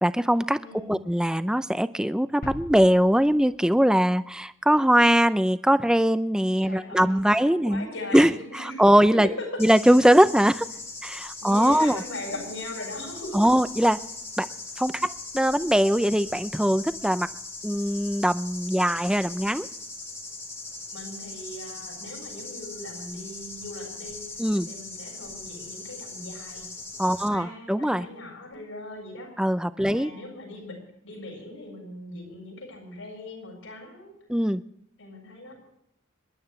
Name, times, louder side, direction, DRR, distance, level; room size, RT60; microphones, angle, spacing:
voice 1, 0.0-7.9 8.1-8.3 8.8-9.3 9.6-10.7 11.0-12.0 13.3-14.0 14.4-14.5 14.8-17.3 17.6-19.7 24.4-24.7 27.0-28.1 29.4-30.1 34.3-34.6, equal, 5° right, 12 dB, 0.5 m, -21 dB
voice 2, 0.6-1.0 6.6-8.8 9.1-9.6 11.4-13.5 20.9-24.2 24.7-26.7 27.1-29.5 29.8-34.1 35.0-35.5, left 1 dB, 90° left, -2 dB, 7.4 m, -39 dB
sound 1, 2.4-5.1, left 1 dB, 45° left, 1.2 m, -43 dB
sound 2, 9.6-27.3, left 3 dB, 15° left, 1.3 m, -40 dB
26.5 x 12.0 x 3.3 m, 0.81 s
head